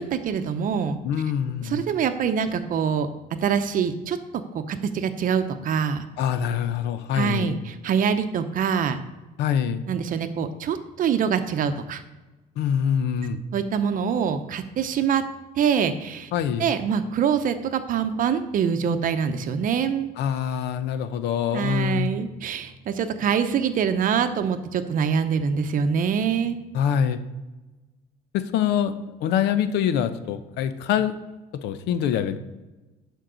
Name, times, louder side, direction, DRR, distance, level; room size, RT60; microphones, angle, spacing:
voice 1, 0.0-1.0 1.6-3.1 3.4-4.2 4.7-6.1 7.1-9.0 9.9-12.0 13.5-15.2 15.6-16.3 16.6-20.1 21.5-26.6, right 7 dB, 55° right, 10 dB, 0.7 m, -24 dB
voice 2, 1.0-1.8 6.2-7.6 9.4-9.8 12.6-13.4 16.3-16.7 20.2-22.1 26.7-27.2 28.3-31.2 31.5-32.4, left 8 dB, 85° left, 11 dB, 0.6 m, -25 dB
11.5 x 4.6 x 3.9 m, 1.1 s
cardioid pair, 110°, 17 cm